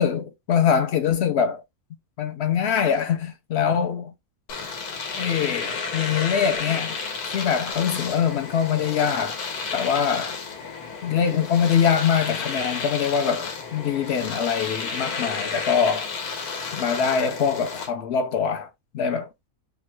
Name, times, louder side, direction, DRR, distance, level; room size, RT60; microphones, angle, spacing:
voice 1, 0.0-1.6 2.2-4.1 5.2-7.0 7.3-9.4 9.7-10.4 11.0-16.1 16.7-19.3, left 7 dB, 65° left, 0.7 m, -23 dB
Domestic sounds home sounds, 4.5-17.9, left 5 dB, 90° left, 1.4 m, -32 dB
3.0 x 2.3 x 4.3 m
omnidirectional pair, 1.6 m